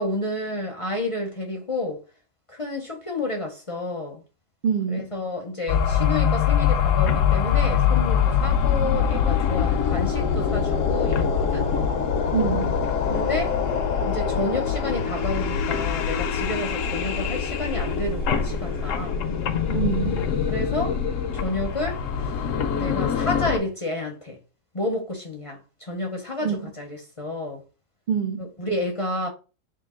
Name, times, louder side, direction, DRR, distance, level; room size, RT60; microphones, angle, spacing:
voice 1, 0.0-2.0 2.5-4.2 4.9-11.7 13.1-13.6 14.0-19.2 20.5-21.0 21.3-22.0 22.8-24.4 24.7-27.6 28.6-29.3, left 2 dB, 35° left, 0.5 m, -30 dB
voice 2, 4.6-5.1 12.3-12.8 19.7-20.2 26.4-26.7 28.1-28.5, right 7 dB, 80° right, 0.4 m, -26 dB
sound 1, 5.7-23.6, left 7 dB, 70° left, 0.9 m, -24 dB
sound 2, 9.8-23.6, right 2 dB, 50° right, 1.0 m, -40 dB
3.8 x 2.5 x 3.6 m
omnidirectional pair, 1.5 m